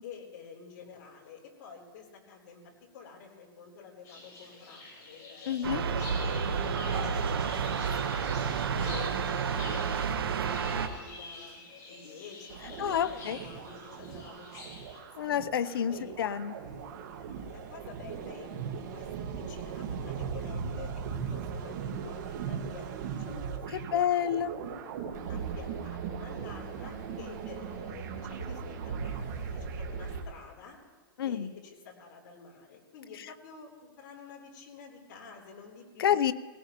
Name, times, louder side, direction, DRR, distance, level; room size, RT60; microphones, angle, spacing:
voice 1, 0.0-5.6 6.0-7.2 7.5-11.6 11.9-15.3 15.9-16.1 17.5-18.5 18.9-24.5 25.3-30.8 31.2-36.2, left 6 dB, 55° left, 0 dB, 3.6 m, -49 dB
sound 1, 4.0-15.0, left 2 dB, 30° left, 4.4 m, -47 dB
voice 2, 5.5-5.8 12.8-13.4 15.2-16.5 23.9-24.5 31.2-31.5 36.0-36.3, left 9 dB, 80° left, 15 dB, 0.6 m, -28 dB
sound 2, 5.6-10.9, right 6 dB, 90° right, 1.1 m, -30 dB
sound 3, 12.5-30.2, right 6 dB, 50° right, 1.7 m, -38 dB
20.0 x 17.5 x 3.0 m, 1.5 s
hypercardioid pair, 150°, 12 cm